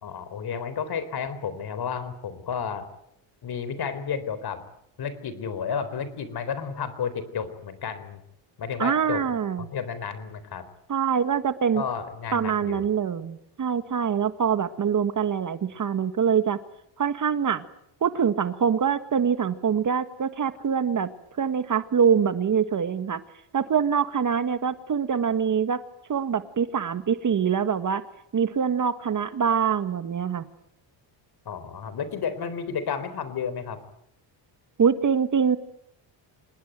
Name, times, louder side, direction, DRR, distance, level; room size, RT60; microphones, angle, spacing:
voice 1, 0.0-2.9 3.4-4.6 5.0-8.2 8.6-9.2 9.6-10.7 11.7-12.9 31.5-33.8, left 6 dB, 50° left, 14 dB, 4.0 m, -32 dB
voice 2, 8.8-9.7 10.9-11.8 12.3-16.6 17.0-17.6 18.0-21.1 21.4-23.2 23.5-25.8 26.1-28.0 28.3-30.4 34.8-35.6, right 7 dB, 40° right, 11 dB, 1.6 m, -24 dB
26.5 x 20.0 x 9.2 m, 0.75 s
cardioid pair, 120°, 48 cm